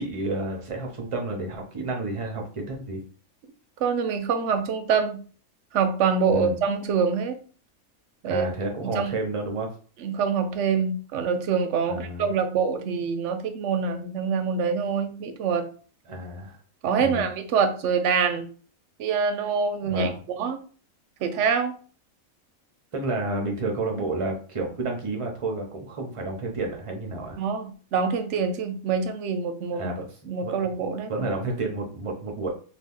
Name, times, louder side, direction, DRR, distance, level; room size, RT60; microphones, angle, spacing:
voice 1, 0.0-3.0 6.3-6.6 8.3-9.7 11.9-12.3 16.1-16.6 17.0-17.2 19.8-20.2 22.9-27.4 29.7-30.1 30.4-30.7 31.1-32.5, right 2 dB, 40° right, 1 dB, 0.5 m, -30 dB
voice 2, 3.8-5.2 5.7-7.4 8.2-8.5 8.8-9.1 10.0-15.7 16.8-18.5 19.0-20.1 20.4-20.6 21.2-21.7 27.4-29.9 30.3-31.3, right 6 dB, 65° right, 7 dB, 0.8 m, -25 dB
2.7 x 2.4 x 3.6 m, 0.41 s
omnidirectional pair, 1.5 m